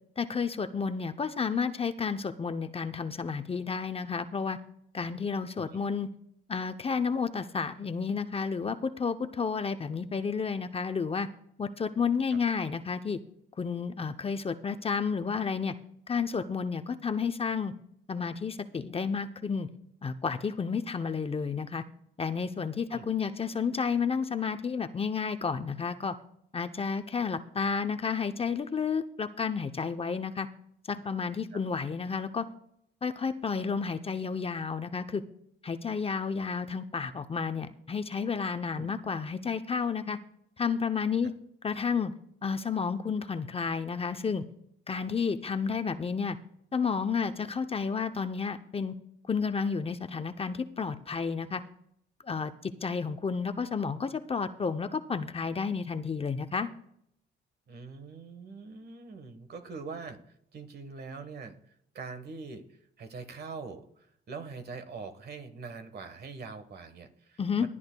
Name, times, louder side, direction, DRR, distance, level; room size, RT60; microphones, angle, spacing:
voice 1, 0.2-4.6 4.9-6.1 6.5-11.3 11.6-13.2 13.6-15.7 16.1-17.7 18.1-19.7 20.0-21.8 22.2-26.2 26.5-30.5 30.9-32.5 33.0-35.2 35.6-40.2 40.6-41.3 41.6-42.1 42.4-44.4 44.9-46.4 46.7-48.9 49.3-51.6 52.2-56.7 67.4-67.7, left 5 dB, 30° left, 9 dB, 0.6 m, -31 dB
voice 2, 57.7-60.2 60.5-62.7 63.0-67.7, right 4 dB, 55° right, 9 dB, 1.3 m, -43 dB
19.5 x 9.9 x 2.3 m, 0.72 s
cardioid pair, 90°, 20 cm